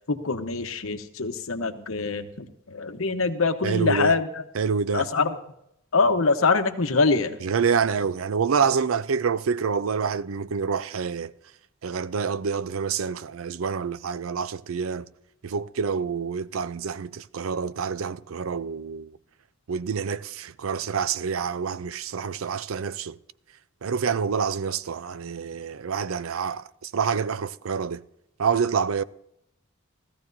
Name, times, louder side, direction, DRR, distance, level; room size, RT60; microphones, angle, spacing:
voice 1, 0.1-4.4 4.9-5.4 5.9-7.4, left 4 dB, 80° left, 1.0 m, -24 dB
voice 2, 3.6-4.1 4.5-5.1 7.4-11.3 11.8-15.1 15.4-19.2 19.7-23.2 23.8-28.0 28.4-29.0, right 6 dB, 75° right, 0.5 m, -27 dB
17.0 x 14.0 x 2.7 m
head